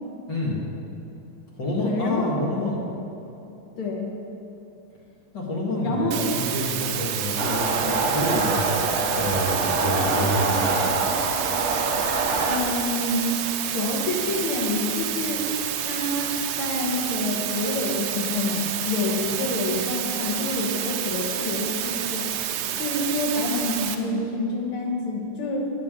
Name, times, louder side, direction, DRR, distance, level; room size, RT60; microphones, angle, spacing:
voice 1, 0.3-0.6 1.6-2.8 5.3-8.6 9.1-10.8, left 1 dB, 55° left, -4 dB, 2.5 m, -27 dB
voice 2, 1.8-2.3 3.8-4.1 5.8-6.2 12.5-13.3 13.7-15.5 15.8-22.3 22.8-25.6, left 2 dB, 75° left, -1 dB, 2.4 m, -27 dB
sound 1, 6.1-24.0, right 10 dB, 85° right, 1.5 m, -29 dB
sound 2, 7.4-12.6, right 3 dB, 45° right, 1.0 m, -25 dB
17.5 x 6.6 x 3.8 m, 2.9 s
omnidirectional pair, 2.4 m